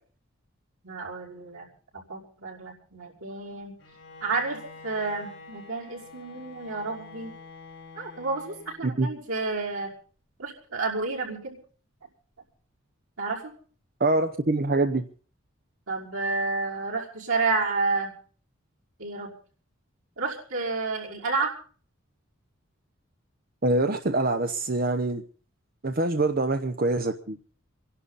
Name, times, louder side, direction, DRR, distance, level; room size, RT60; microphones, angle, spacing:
voice 1, 0.8-1.7 1.9-3.8 4.2-7.3 8.0-9.9 10.4-11.6 13.2-13.5 15.9-18.1 19.0-19.3 20.2-21.5, right 3 dB, 90° right, -4 dB, 5.5 m, -30 dB
Bowed string instrument, 3.8-9.2, left 4 dB, 60° left, 4.2 m, -47 dB
voice 2, 14.0-15.0 23.6-25.2 25.8-27.4, right 2 dB, 45° right, 7 dB, 0.9 m, -25 dB
26.5 x 11.5 x 4.2 m, 0.42 s
head